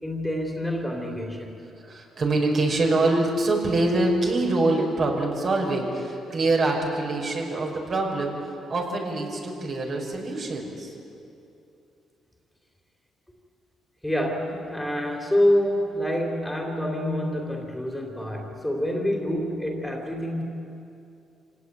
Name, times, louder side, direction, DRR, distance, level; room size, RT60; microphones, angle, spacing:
voice 1, 0.0-1.6 14.0-20.4, left 1 dB, 5° left, 2 dB, 3.3 m, -27 dB
voice 2, 1.8-11.0, right 2 dB, 50° right, 0 dB, 5.5 m, -25 dB
26.5 x 18.0 x 9.2 m, 2.7 s
cardioid pair, 90°, 0 cm